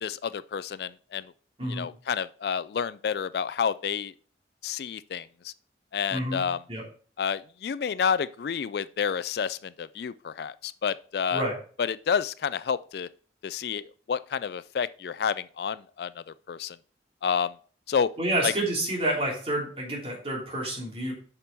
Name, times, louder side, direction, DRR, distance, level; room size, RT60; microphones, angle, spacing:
voice 1, 0.0-1.3 1.7-4.1 4.6-5.5 5.9-6.6 7.2-11.4 11.8-13.1 13.4-13.8 14.1-16.8 17.2-17.5 17.9-18.1 18.4-18.5, left 7 dB, 60° left, 0.3 m, -29 dB
voice 2, 6.1-6.8 11.3-11.6 18.2-21.1, right 1 dB, 30° right, 3.2 m, -29 dB
8.7 x 5.9 x 4.5 m
head